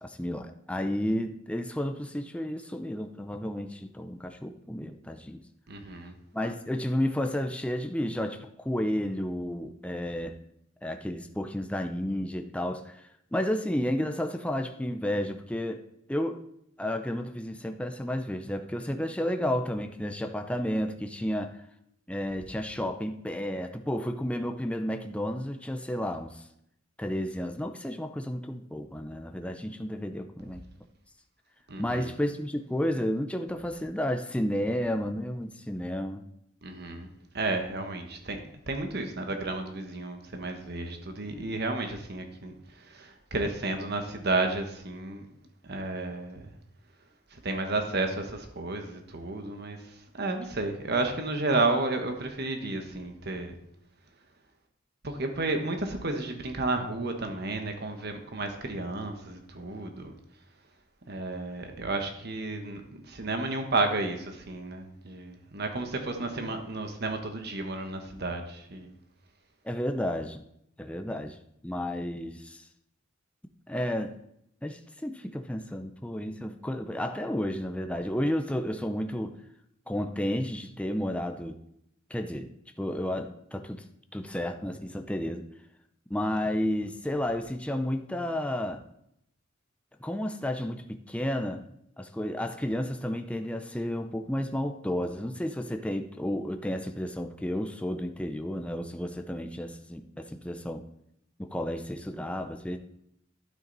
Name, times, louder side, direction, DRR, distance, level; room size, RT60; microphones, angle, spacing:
voice 1, 0.0-5.4 6.3-10.4 10.8-16.4 16.8-21.6 22.1-26.4 27.0-30.6 31.8-36.2 69.6-70.4 70.8-71.4 71.6-72.6 73.7-74.1 74.6-79.4 79.9-81.6 82.1-82.5 82.8-83.8 84.1-85.5 86.1-88.8 90.0-91.6 92.0-100.8 101.4-102.8, left 1 dB, 5° left, 6 dB, 0.6 m, -32 dB
voice 2, 5.7-6.1 31.7-32.1 36.6-37.1 37.3-38.4 38.7-42.5 42.8-45.3 45.6-46.5 47.3-49.8 50.1-53.5 55.0-60.1 61.1-68.9, right 2 dB, 55° right, 5 dB, 1.3 m, -32 dB
12.0 x 9.0 x 4.1 m, 0.76 s
head